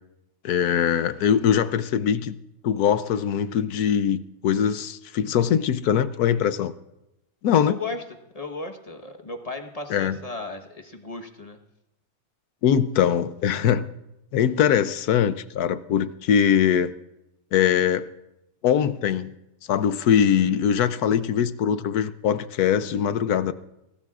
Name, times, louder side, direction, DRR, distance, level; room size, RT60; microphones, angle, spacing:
voice 1, 0.4-2.3 2.6-6.7 7.4-7.7 9.9-10.2 12.6-13.9 14.3-16.9 17.5-18.1 18.6-19.3 19.7-23.5, left 8 dB, 75° left, 13 dB, 1.2 m, -22 dB
voice 2, 7.7-8.0 8.3-11.6, left 3 dB, 25° left, 5 dB, 1.2 m, -35 dB
23.0 x 17.5 x 2.4 m, 0.89 s
omnidirectional pair, 1.6 m